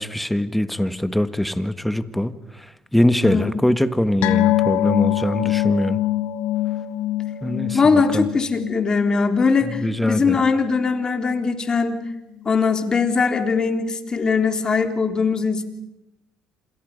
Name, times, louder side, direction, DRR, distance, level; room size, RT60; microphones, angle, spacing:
voice 1, 0.0-2.7 2.9-6.0 7.4-8.2 9.6-10.4, left 1 dB, 5° left, 12 dB, 1.6 m, -22 dB
voice 2, 3.2-3.6 7.7-12.0 12.4-15.6, left 4 dB, 35° left, 6 dB, 3.3 m, -20 dB
sound 1, 4.2-11.0 11.3-11.5 11.9-12.0, left 14 dB, 75° left, 1.4 m, -24 dB
28.5 x 27.0 x 5.3 m, 0.92 s
supercardioid pair, 70°, 2 cm